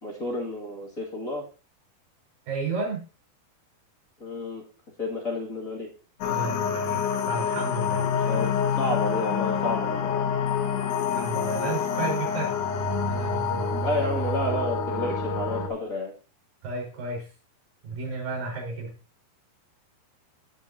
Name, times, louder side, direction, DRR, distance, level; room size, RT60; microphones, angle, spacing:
voice 1, 0.0-1.4 4.2-4.6 5.0-5.9 8.3-8.5 8.8-10.3 13.7-16.1, left 2 dB, 25° left, -2 dB, 2.2 m, -31 dB
voice 2, 2.5-3.0 6.2-8.3 11.1-12.5 13.1-13.7 16.6-17.3 17.8-18.9, right 3 dB, 65° right, -2 dB, 6.5 m, -33 dB
sound 1, 6.2-15.7, left 6 dB, 65° left, 2.2 m, -27 dB
17.0 x 6.4 x 2.9 m, 0.35 s
omnidirectional pair, 4.4 m